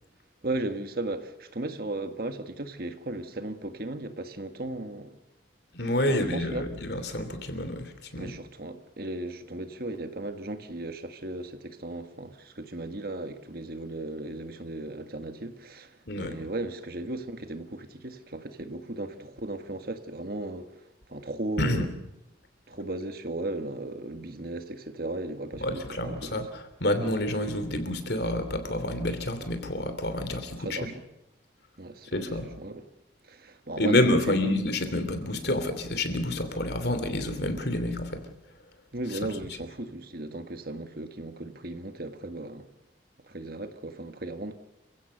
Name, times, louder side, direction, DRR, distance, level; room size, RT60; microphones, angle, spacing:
voice 1, 0.4-5.2 6.1-6.7 8.2-20.7 21.1-21.9 22.7-26.4 30.6-30.9 31.8-32.9 33.2-34.6 38.9-42.7 43.2-44.6, right 2 dB, 55° right, 1.6 m, -36 dB
voice 2, 5.7-8.3 16.1-16.3 21.6-21.9 25.6-30.8 32.1-32.5 33.8-38.3, left 1 dB, 60° left, 2.9 m, -28 dB
28.5 x 16.0 x 6.8 m
head